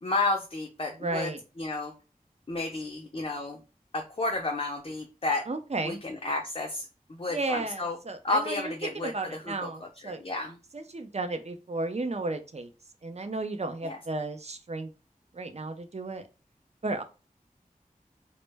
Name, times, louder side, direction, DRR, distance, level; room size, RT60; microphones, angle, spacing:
voice 1, 0.0-1.3 1.6-1.9 2.5-3.6 3.9-5.5 5.8-8.0 8.2-9.5 10.0-10.6 13.8-14.0, left 2 dB, 40° left, 1 dB, 0.4 m, -31 dB
voice 2, 1.0-1.4 5.5-6.0 7.3-10.2 10.7-12.7 13.0-14.9 15.3-16.2 16.8-17.0, right 2 dB, 45° right, 7 dB, 0.4 m, -33 dB
2.1 x 2.0 x 3.3 m, 0.31 s
wide cardioid pair, 50°, 15 cm